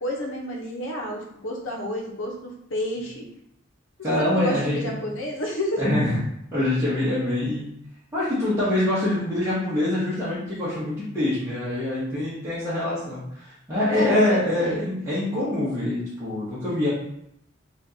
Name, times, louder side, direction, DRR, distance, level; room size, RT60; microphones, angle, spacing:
voice 1, 0.0-3.3 4.1-5.9 13.9-14.9, equal, 70° left, -1 dB, 0.8 m, -30 dB
voice 2, 4.0-5.1 5.8-6.2 6.5-7.7 8.1-16.9, left 1 dB, 15° right, -10 dB, 1.0 m, -25 dB
4.4 x 2.5 x 2.8 m, 0.77 s
head